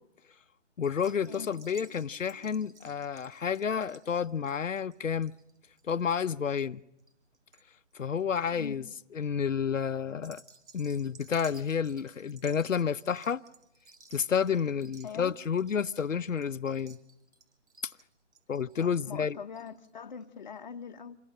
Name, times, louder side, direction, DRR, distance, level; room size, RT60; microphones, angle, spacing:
voice 1, 0.8-5.3 5.9-6.8 7.9-8.8 9.1-10.4 10.7-13.4 14.1-17.0 17.8-17.9 18.5-19.4, left 7 dB, 90° left, 0.8 m, -30 dB
sound 1, 0.8-7.6 7.9-8.4 9.0-9.3 10.1-19.9 20.2-20.3 20.5-20.6, right 4 dB, 65° right, 4.7 m, -57 dB
Bass guitar, 1.2-3.9, left 12 dB, 10° left, 0.9 m, -59 dB
voice 2, 15.0-15.3 18.8-21.2, left 6 dB, 35° left, 1.0 m, -43 dB
27.5 x 24.0 x 6.6 m
hypercardioid pair, 165°, 37 cm